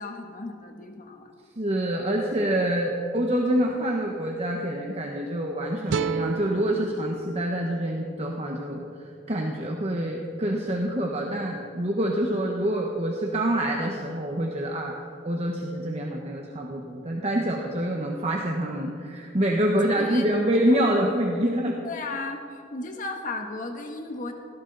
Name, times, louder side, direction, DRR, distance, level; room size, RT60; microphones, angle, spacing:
voice 1, 0.0-1.3 20.0-20.2 20.7-20.9 21.8-24.3, left 3 dB, 45° left, 3 dB, 1.4 m, -35 dB
voice 2, 1.6-8.8 9.3-15.0 15.2-21.8, right 1 dB, 35° right, 0 dB, 1.3 m, -26 dB
sound 1, 5.9-9.1, right 6 dB, 75° right, 0.4 m, -34 dB
19.0 x 16.0 x 4.1 m, 2.4 s
head